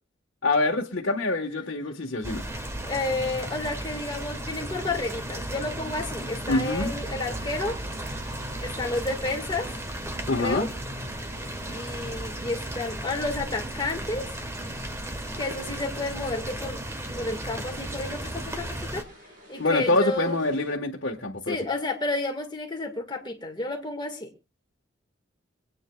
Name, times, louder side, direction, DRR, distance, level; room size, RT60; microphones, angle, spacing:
voice 1, 0.4-2.4 6.5-6.9 10.3-10.7 19.6-21.6, left 2 dB, 75° left, -1 dB, 1.4 m, -25 dB
sound 1, 2.2-19.0, right 1 dB, 15° right, 1.3 m, -35 dB
voice 2, 2.8-7.8 8.6-9.7 10.4-10.7 11.7-14.3 15.4-16.8 17.2-19.0 19.5-20.4 21.5-24.3, left 2 dB, 25° left, 3 dB, 1.8 m, -31 dB
sound 2, 7.2-20.8, equal, 45° right, 5.1 m, -52 dB
25.5 x 9.1 x 2.3 m, 0.30 s
head